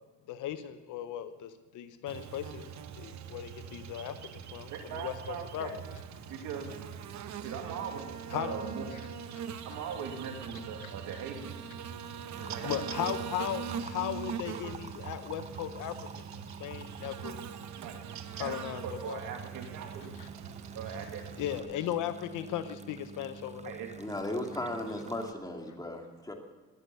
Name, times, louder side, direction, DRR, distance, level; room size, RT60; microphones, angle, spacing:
voice 1, 0.3-5.7 8.3-8.6 10.8-10.9 12.6-17.5 18.4-19.2 20.2-20.3 21.4-23.7, left 11 dB, 85° left, 10 dB, 0.9 m, -37 dB
Buzz, 2.1-21.6, right 7 dB, 70° right, 1.0 m, -42 dB
voice 2, 4.7-5.7 6.3-6.8 7.4-8.1 8.3-8.9 9.6-11.6 12.4-12.8 17.8-17.9 18.4-18.5 18.8-20.2 20.7-21.2 23.6-23.9, right 7 dB, 85° right, 3 dB, 2.5 m, -40 dB
sound 1, 12.3-25.3, right 5 dB, 25° right, 0.6 m, -47 dB
voice 3, 24.0-26.3, left 1 dB, 10° left, 2 dB, 2.5 m, -36 dB
20.0 x 8.2 x 6.9 m, 1.3 s
cardioid pair, 90°, 30 cm